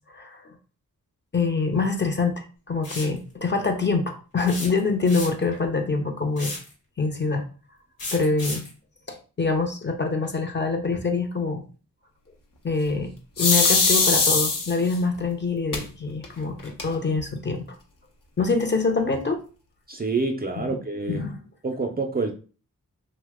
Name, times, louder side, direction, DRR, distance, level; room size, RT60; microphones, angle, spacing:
voice 1, 0.1-0.5 1.3-6.5 7.0-7.5 8.1-8.6 9.1-11.6 12.6-17.7 18.4-19.4 20.6-20.8 21.1-21.4, left 4 dB, 30° left, 0.6 m, -25 dB
sound 1, 2.8-3.2 4.5-5.5 6.4-6.7 8.0-8.7, left 2 dB, 90° left, 1.1 m, -34 dB
sound 2, 13.4-14.9 15.7-15.8 16.2-16.3 16.6-17.2, left 4 dB, 65° left, 0.8 m, -20 dB
voice 2, 19.9-21.3 21.6-22.3, right 3 dB, 25° right, 0.5 m, -27 dB
2.8 x 2.1 x 3.5 m
cardioid pair, 50°, 34 cm